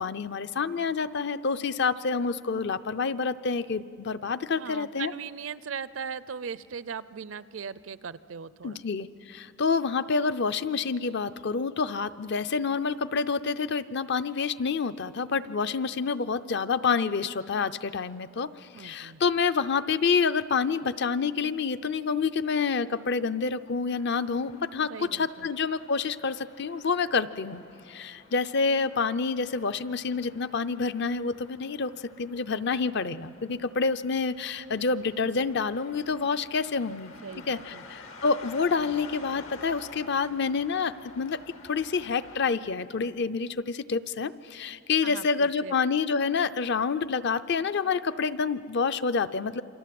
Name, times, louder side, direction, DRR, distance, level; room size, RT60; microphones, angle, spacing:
voice 1, 0.0-5.1 8.6-27.6 27.9-37.1 37.5-41.4 41.6-49.6, left 5 dB, 55° left, 13 dB, 0.6 m, -28 dB
voice 2, 4.6-8.8 18.7-19.2 24.9-25.5 37.2-37.8 45.0-45.7, right 6 dB, 65° right, 17 dB, 0.5 m, -39 dB
sound 1, 23.9-42.4, left 3 dB, 90° left, 2.7 m, -50 dB
28.5 x 25.0 x 7.7 m, 2.8 s
head